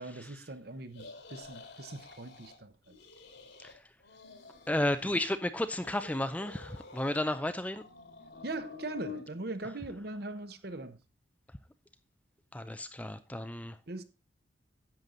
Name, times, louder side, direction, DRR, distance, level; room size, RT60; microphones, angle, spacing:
voice 1, 0.0-2.9 5.0-5.1 8.4-11.0 13.9-14.0, right 2 dB, 55° right, 1.0 m, -41 dB
sound 1, 0.9-2.6 2.9-3.7 4.0-5.4 5.7-7.4 7.7-9.2, left 4 dB, 65° left, 2.1 m, -49 dB
voice 2, 4.7-7.8 12.5-13.8, left 1 dB, 10° left, 0.4 m, -33 dB
10.5 x 7.7 x 3.9 m
head